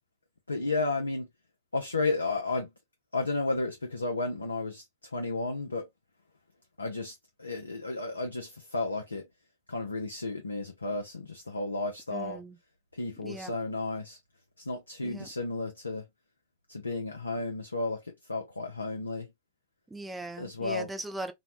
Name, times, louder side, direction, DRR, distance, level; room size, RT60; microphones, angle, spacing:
voice 1, 0.5-1.3 1.7-2.7 3.1-5.9 6.8-9.3 9.7-12.4 12.9-14.2 14.6-16.1 16.7-19.3 20.4-20.9, left 3 dB, 90° left, 0.5 m, -33 dB
voice 2, 12.1-12.6 13.2-13.5 15.0-15.3 19.9-21.3, right 2 dB, 10° right, 0.6 m, -39 dB
3.0 x 2.1 x 2.4 m
figure-of-eight pair, 90°, 0 cm